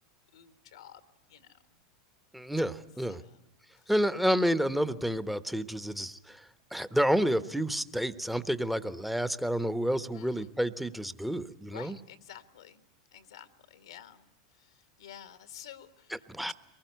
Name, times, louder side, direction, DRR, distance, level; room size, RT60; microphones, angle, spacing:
voice 1, 0.3-1.7 3.1-4.1 10.1-10.5 11.7-12.9 13.1-16.5, left 10 dB, 80° left, 11 dB, 1.6 m, -51 dB
voice 2, 2.3-3.2 3.9-6.4 6.7-12.0 16.3-16.5, equal, 5° right, 13 dB, 1.2 m, -29 dB
23.0 x 20.5 x 9.3 m, 0.87 s
hypercardioid pair, 90°, 3 cm